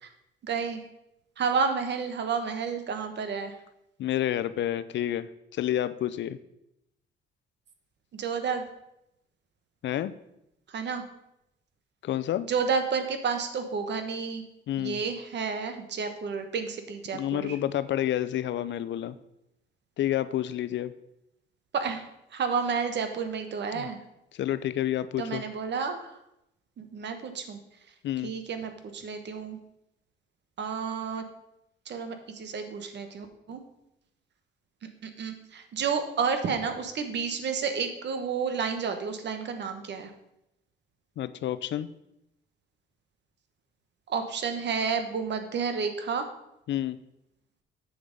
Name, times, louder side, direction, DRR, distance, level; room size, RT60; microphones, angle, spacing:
voice 1, 0.4-0.8 1.4-3.5 8.1-8.6 10.7-11.0 12.4-14.4 14.8-17.6 21.7-24.0 25.2-26.2 26.8-27.6 28.2-29.6 30.6-31.2 31.8-33.6 34.8-40.1 44.1-46.3, right 5 dB, 60° right, 7 dB, 1.3 m, -31 dB
voice 2, 4.0-6.4 9.8-10.1 12.0-12.5 14.7-15.0 17.1-19.2 20.0-20.9 23.7-23.9 24.3-25.4 28.0-28.3 41.2-41.9 46.7-47.0, left 12 dB, 65° left, 14 dB, 0.5 m, -29 dB
8.0 x 6.8 x 5.3 m, 0.83 s
cardioid pair, 90°, 20 cm